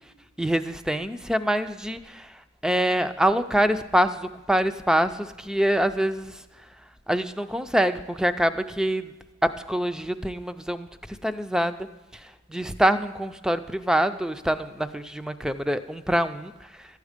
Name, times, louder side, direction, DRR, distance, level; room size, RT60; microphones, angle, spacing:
voice 1, 0.4-2.3 2.6-6.4 7.1-9.1 9.7-10.9 11.2-11.9 12.1-12.2 12.5-16.5, right 1 dB, 5° right, 10 dB, 0.3 m, -25 dB
12.5 x 8.2 x 5.0 m, 1.2 s
head